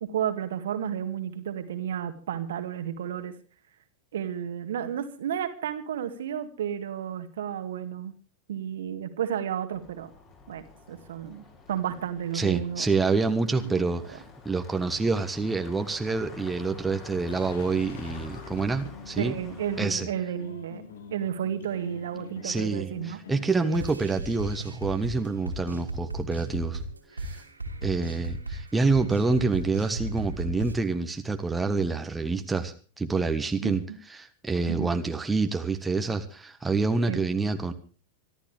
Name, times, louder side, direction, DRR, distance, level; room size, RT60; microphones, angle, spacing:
voice 1, 0.0-3.3 4.1-8.1 8.5-10.1 10.5-11.4 11.7-12.9 13.6-13.7 19.2-20.8 21.1-23.2 23.6-23.9 33.6-33.7 34.7-34.9 37.1-37.2, right 9 dB, 60° right, 8 dB, 2.0 m, -32 dB
sound 1, 9.7-19.8, left 4 dB, 30° left, 7.1 m, -47 dB
voice 2, 12.3-19.3 19.8-20.1 22.4-26.8 27.2-27.4 27.8-33.8 34.2-37.7, right 4 dB, 10° right, 6 dB, 1.5 m, -27 dB
sound 2, 17.3-23.8, left 5 dB, 60° left, 2.5 m, -45 dB
sound 3, 23.7-30.7, right 1 dB, 80° right, 2.9 m, -35 dB
25.0 x 12.5 x 3.5 m, 0.38 s
figure-of-eight pair, 90°, 0 cm